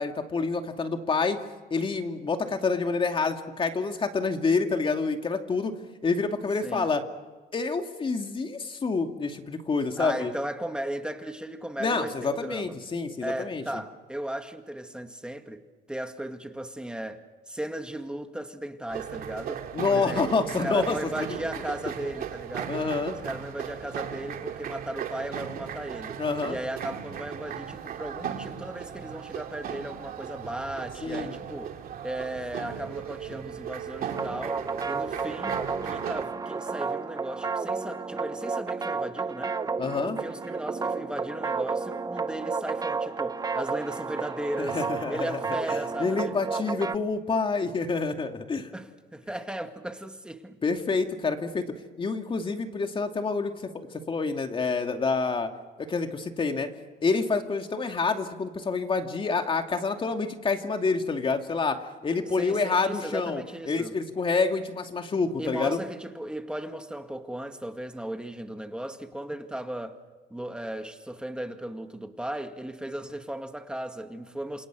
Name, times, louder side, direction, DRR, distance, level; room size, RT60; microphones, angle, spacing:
voice 1, 0.0-1.4 1.7-5.7 6.0-7.0 7.5-10.3 11.8-13.6 19.7-21.4 22.7-23.2 26.2-26.6 31.0-31.3 39.8-40.2 44.6-45.4 45.7-48.7 50.6-51.6 52.0-55.5 55.8-56.7 57.0-65.8, left 4 dB, 30° left, 2.6 m, -28 dB
voice 2, 10.0-12.8 13.2-20.3 20.6-22.9 23.2-31.7 32.0-39.6 40.0-46.4 48.7-50.6 62.3-63.9 65.4-70.0 70.3-74.7, right 1 dB, 5° right, 2.0 m, -36 dB
sound 1, 18.9-36.2, right 9 dB, 60° right, 2.5 m, -37 dB
sound 2, 34.0-47.0, right 4 dB, 20° right, 0.8 m, -32 dB
28.0 x 27.5 x 6.4 m
cardioid pair, 110°, 17 cm